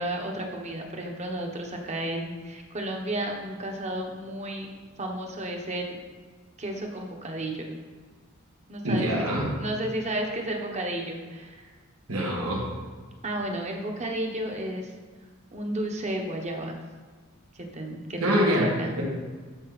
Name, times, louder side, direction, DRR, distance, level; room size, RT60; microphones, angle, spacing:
voice 1, 0.0-4.7 5.0-6.0 6.6-7.7 8.7-11.7 13.2-14.9 15.5-16.8 17.5-18.9, right 1 dB, 30° right, 2 dB, 1.1 m, -32 dB
voice 2, 8.8-9.5 12.1-12.7 18.2-19.0, equal, 85° right, -2 dB, 2.0 m, -25 dB
13.0 x 4.7 x 4.1 m, 1.4 s
head